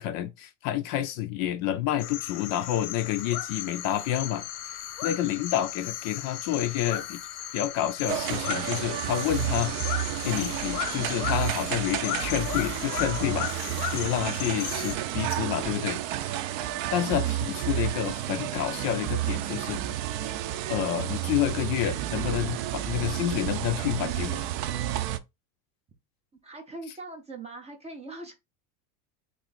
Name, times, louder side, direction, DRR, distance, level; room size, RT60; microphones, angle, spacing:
voice 1, 0.0-4.5 4.7-7.2 7.5-9.7 10.2-13.5 13.9-16.0 16.9-19.8 20.7-24.4, left 12 dB, 45° left, 0.4 m, -29 dB
sound 1, 2.0-15.0, left 12 dB, 85° left, 0.8 m, -36 dB
sound 2, 8.1-25.2, right 13 dB, 60° right, 0.6 m, -31 dB
voice 2, 26.4-28.3, right 3 dB, 15° right, 0.4 m, -41 dB
3.2 x 2.6 x 3.9 m
supercardioid pair, 135°, 49 cm